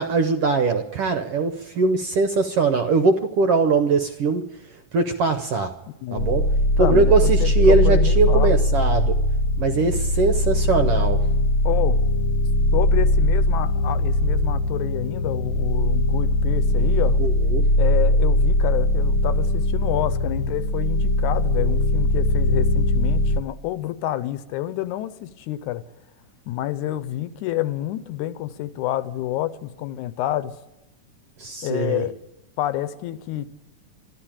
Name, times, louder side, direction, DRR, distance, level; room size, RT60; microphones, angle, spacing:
voice 1, 0.0-4.4 4.9-5.7 6.1-6.4 6.8-9.1 9.6-11.2 17.2-17.7 31.4-32.0, right 4 dB, 70° right, 1.4 m, -21 dB
voice 2, 6.0-6.4 6.8-8.6 11.6-12.0 12.7-17.2 17.8-25.8 26.5-30.5 31.6-32.1 32.6-33.5, left 14 dB, 80° left, 2.1 m, -28 dB
sound 1, 6.2-23.4, left 1 dB, 60° left, 1.5 m, -20 dB
13.0 x 12.0 x 8.8 m
omnidirectional pair, 3.4 m